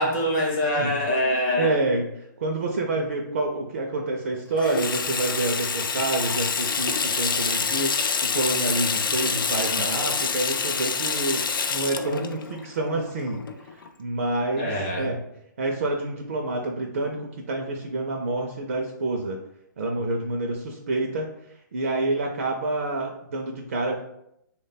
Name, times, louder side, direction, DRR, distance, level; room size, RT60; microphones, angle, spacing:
voice 1, 0.0-1.7 14.6-15.2, left 1 dB, 20° left, -1 dB, 0.5 m, -24 dB
voice 2, 1.6-15.2 15.6-19.4 19.8-21.3 21.7-24.0, right 2 dB, 45° right, 1 dB, 0.4 m, -28 dB
Water tap faucet / Sink (filling or washing), 4.6-13.9, left 5 dB, 85° left, 0.4 m, -27 dB
3.4 x 2.2 x 4.0 m, 0.77 s
hypercardioid pair, 175°, 11 cm